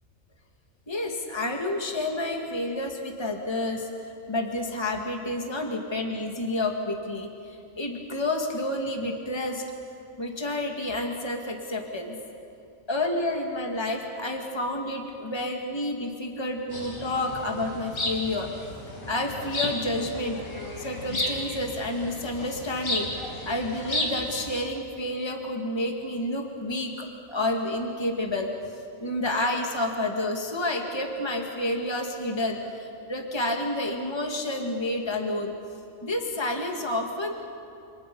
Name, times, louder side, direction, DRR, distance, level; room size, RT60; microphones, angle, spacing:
voice 1, 0.9-9.6 10.2-12.2 12.9-18.5 19.1-20.4 20.8-28.5 29.0-35.5 36.0-37.3, left 1 dB, 20° left, 2 dB, 2.2 m, -30 dB
sound 1, 16.7-24.5, left 1 dB, 65° left, 3.5 m, -33 dB
29.0 x 26.5 x 5.5 m, 2.5 s
omnidirectional pair, 1.5 m